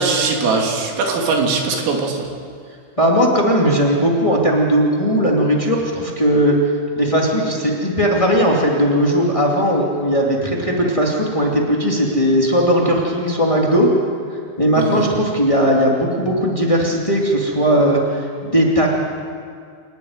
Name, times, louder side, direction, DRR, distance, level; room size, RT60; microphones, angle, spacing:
voice 1, 0.0-2.3 14.8-15.1, right 4 dB, 85° right, 1 dB, 5.3 m, -20 dB
voice 2, 3.0-6.7 6.9-13.9 14.6-18.9, equal, 25° left, -2 dB, 0.6 m, -17 dB
28.0 x 11.5 x 9.7 m, 2.2 s
omnidirectional pair, 5.8 m